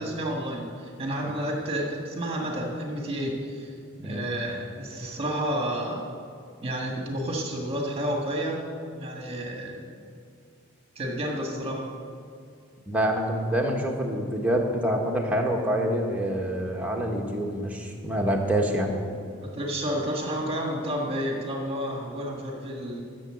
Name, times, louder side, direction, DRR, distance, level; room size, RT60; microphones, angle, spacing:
voice 1, 0.0-3.7 4.0-6.1 6.6-8.6 8.9-9.9 11.0-11.8 19.5-23.0, equal, 30° right, 0 dB, 1.7 m, -30 dB
voice 2, 12.9-18.9, right 1 dB, 5° right, 0 dB, 1.3 m, -26 dB
12.5 x 7.0 x 7.8 m, 2.3 s
head